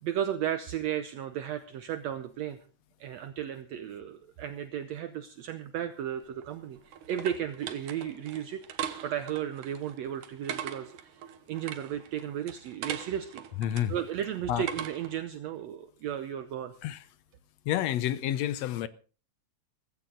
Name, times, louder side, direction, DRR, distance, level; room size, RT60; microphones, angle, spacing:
voice 1, 0.0-2.6 3.0-11.2 11.5-13.4 13.9-16.7, right 10 dB, 70° right, 1.9 m, -34 dB
sound 1, 6.2-15.2, right 10 dB, 85° right, 2.6 m, -41 dB
voice 2, 13.6-13.9 14.5-14.7 16.8-17.0 17.7-18.9, left 11 dB, 70° left, 1.9 m, -29 dB
17.0 x 15.5 x 3.9 m
omnidirectional pair, 3.5 m